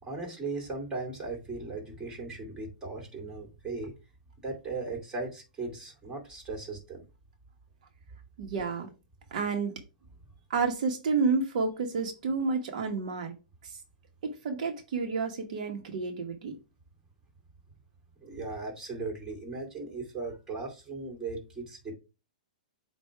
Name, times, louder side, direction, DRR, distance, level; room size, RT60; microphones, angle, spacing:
voice 1, 0.0-3.9 4.4-7.1 18.2-21.9, right 3 dB, 15° right, 1 dB, 2.4 m, -37 dB
voice 2, 8.4-8.9 9.3-9.7 10.5-13.3 13.6-13.8 14.2-16.5, right 4 dB, 60° right, 3 dB, 1.3 m, -30 dB
7.8 x 2.7 x 4.7 m, 0.30 s
hypercardioid pair, 135°, 5 cm